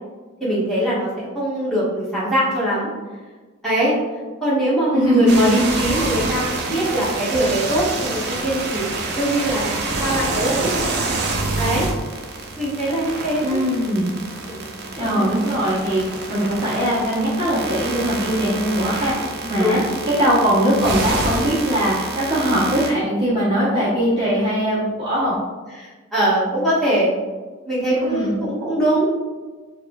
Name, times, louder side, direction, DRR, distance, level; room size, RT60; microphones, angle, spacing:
voice 1, 0.4-2.9 3.6-3.9 4.4-8.9 9.2-10.7 11.6-11.9 12.6-13.6 14.5-14.7 15.3-15.5 19.6-19.8 25.8-27.1 27.6-29.2, right 1 dB, ahead, -10 dB, 1.3 m, -22 dB
voice 2, 4.9-5.5 13.4-14.1 15.0-19.8 20.2-25.3 27.9-28.3, equal, 25° right, -11 dB, 0.8 m, -20 dB
sound 1, 5.3-22.9, right 3 dB, 50° right, 0.5 m, -27 dB
6.5 x 2.5 x 2.3 m, 1.3 s
head